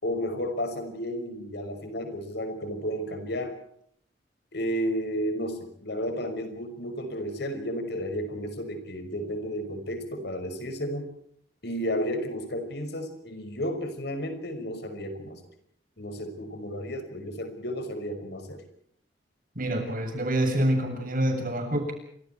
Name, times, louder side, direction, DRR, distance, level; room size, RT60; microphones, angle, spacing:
voice 1, 0.0-3.5 4.5-11.1 11.6-15.4 16.0-18.6, equal, 65° left, 7 dB, 5.8 m, -32 dB
voice 2, 19.6-21.9, right 1 dB, 50° right, 5 dB, 7.6 m, -26 dB
29.5 x 26.0 x 4.6 m, 0.66 s
head